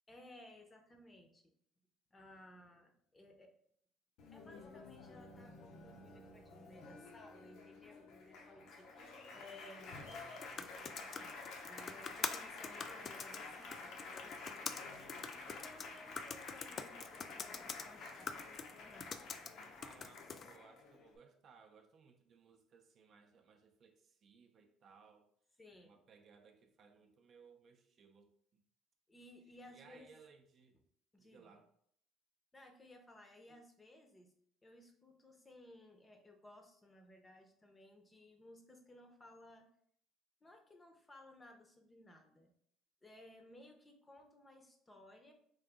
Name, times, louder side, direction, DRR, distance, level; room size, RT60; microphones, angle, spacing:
voice 1, 0.1-1.5 2.1-3.5 4.3-10.2 10.5-11.3 11.7-19.1 25.6-25.9 29.1-30.1 31.1-31.5 32.5-34.3 34.6-39.7 40.4-42.5 43.0-45.3, left 1 dB, 20° left, 4 dB, 0.7 m, -59 dB
Applause, 4.2-21.2, left 3 dB, 65° left, 0.7 m, -51 dB
voice 2, 9.0-9.5 14.7-16.2 19.8-25.3 25.8-28.6 29.7-30.8 31.2-31.7 33.5-33.6, right 5 dB, 50° right, 5 dB, 0.5 m, -64 dB
sound 1, 10.0-20.6, left 6 dB, 40° left, 0.3 m, -47 dB
3.8 x 2.6 x 3.4 m, 0.65 s
cardioid pair, 105°, 0 cm